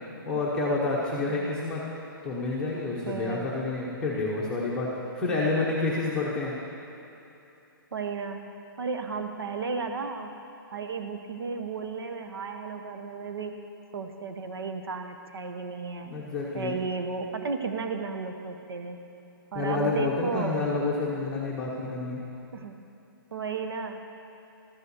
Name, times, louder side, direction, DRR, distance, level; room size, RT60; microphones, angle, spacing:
voice 1, 0.2-1.8 2.2-6.5 16.0-16.7 19.5-22.2, left 3 dB, 5° left, -6 dB, 0.8 m, -29 dB
voice 2, 3.1-3.5 7.9-8.4 8.8-10.3 10.7-13.6 13.9-16.1 16.5-19.0 19.5-20.7 22.5-22.8 23.3-24.0, right 4 dB, 85° right, 6 dB, 0.9 m, -34 dB
13.0 x 5.5 x 8.0 m, 2.9 s
hypercardioid pair, 170°, 12 cm